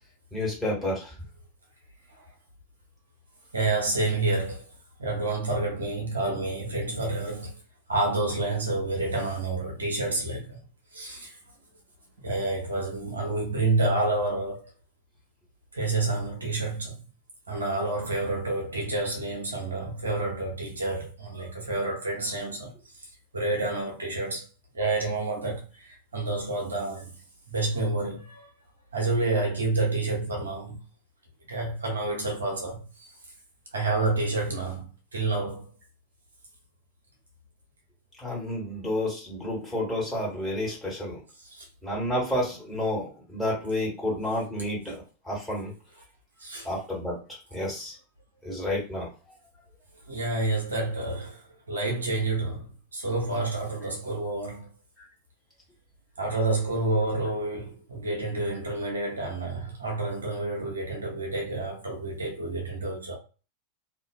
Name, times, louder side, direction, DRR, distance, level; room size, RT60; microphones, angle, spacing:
voice 1, 0.3-1.1 38.2-41.2 41.8-45.7 46.6-47.2 47.5-47.9 48.4-49.1, left 1 dB, ahead, 1.3 m, -30 dB
voice 2, 3.5-4.7 5.0-7.6 7.9-10.6 10.9-11.4 12.2-14.7 15.7-17.0 17.5-23.1 23.3-24.5 24.7-27.1 27.5-28.5 28.9-30.8 31.5-33.1 33.7-35.7 41.4-41.7 46.4-46.7 50.1-54.7 56.2-63.1, right 2 dB, 75° right, 0.7 m, -29 dB
2.4 x 2.3 x 2.3 m
figure-of-eight pair, 90°, 0 cm